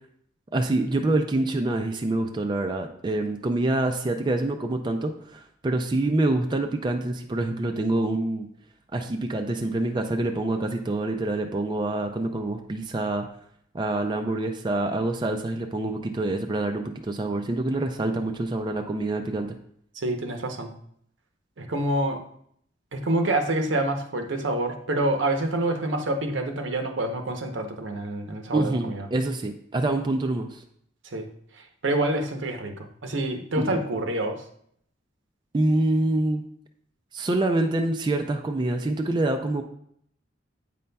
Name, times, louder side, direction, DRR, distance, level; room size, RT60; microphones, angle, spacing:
voice 1, 0.5-8.5 8.9-13.3 13.7-19.6 28.5-30.6 33.6-33.8 35.5-36.4 37.1-39.6, right 2 dB, 25° right, 4 dB, 0.4 m, -26 dB
voice 2, 19.9-20.7 21.6-22.2 22.9-29.1 31.0-31.3 31.5-34.4, right 1 dB, 70° right, 5 dB, 0.7 m, -27 dB
8.3 x 5.3 x 2.2 m, 0.68 s
head